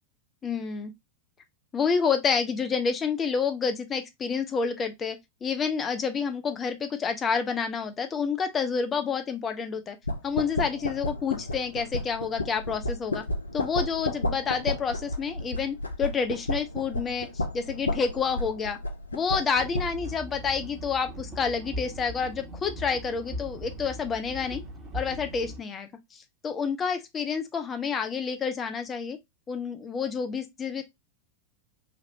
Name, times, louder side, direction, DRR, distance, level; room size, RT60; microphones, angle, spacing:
voice 1, 0.4-0.9 1.7-10.0 10.2-13.2 13.5-18.8 19.1-24.6 24.9-29.2 29.5-30.8, left 6 dB, 20° left, 0.5 m, -29 dB
sound 1, 10.0-20.1, left 2 dB, 75° left, 0.5 m, -32 dB
sound 2, 19.5-25.6, equal, 25° right, 1.3 m, -39 dB
3.2 x 2.5 x 2.7 m
figure-of-eight pair, 90°, 0 cm